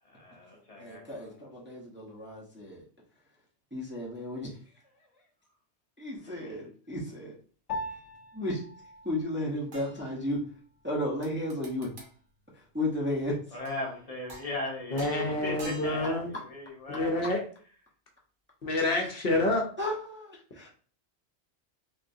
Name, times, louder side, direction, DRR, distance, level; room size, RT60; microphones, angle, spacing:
voice 1, 0.0-1.5 6.2-6.3 13.5-17.3, left 2 dB, 35° left, -1 dB, 0.8 m, -38 dB
voice 2, 0.8-2.8 3.7-4.5 6.0-7.4 8.3-8.6 9.0-10.4 10.8-11.9 12.7-13.3 19.8-20.7, left 1 dB, 10° right, -4 dB, 0.6 m, -33 dB
Piano, 7.7-17.3, left 2 dB, 90° left, 0.9 m, -46 dB
sound 1, 9.7-10.6 11.2-12.2 13.6-14.0 14.3-14.7 15.0-16.2 18.8-18.9, right 2 dB, 55° right, 0.9 m, -49 dB
voice 3, 14.9-16.3 16.9-17.4 18.6-19.6, left 2 dB, 60° left, 1 dB, 0.9 m, -28 dB
3.5 x 2.5 x 2.6 m, 0.43 s
omnidirectional pair, 1.1 m